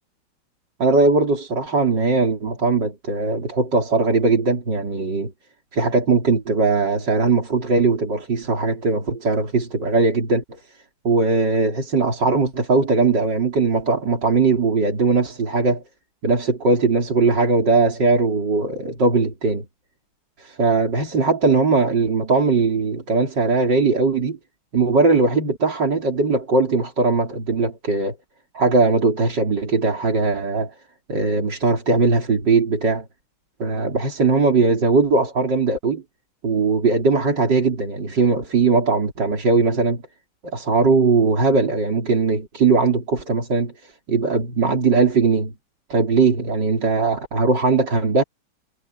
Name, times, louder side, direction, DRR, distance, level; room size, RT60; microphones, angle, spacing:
voice 1, 0.8-5.3 5.7-10.4 11.0-15.8 16.2-19.7 20.4-24.4 24.7-28.2 28.5-30.7 31.1-33.1 33.6-36.0 36.4-40.0 40.5-45.5 45.9-48.2, right 3 dB, 55° right, 4.1 m, -19 dB
omnidirectional pair, 2.4 m